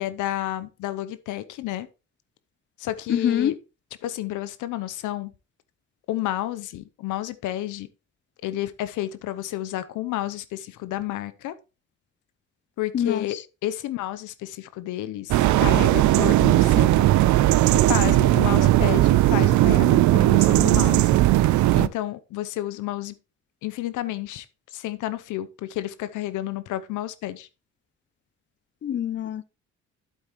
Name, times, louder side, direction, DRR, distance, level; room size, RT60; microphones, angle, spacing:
voice 1, 0.0-1.9 2.8-3.5 4.0-5.3 6.1-7.9 8.4-11.5 12.8-13.4 13.6-17.0 17.9-21.1 21.8-23.2 23.6-27.5, left 14 dB, 90° left, 0.7 m, -31 dB
voice 2, 3.1-3.6 12.9-13.2 28.8-29.4, left 9 dB, 40° left, 0.5 m, -24 dB
sound 1, 15.3-21.9, right 15 dB, 70° right, 0.5 m, -18 dB
9.1 x 7.9 x 3.0 m
cardioid pair, 90°, 30 cm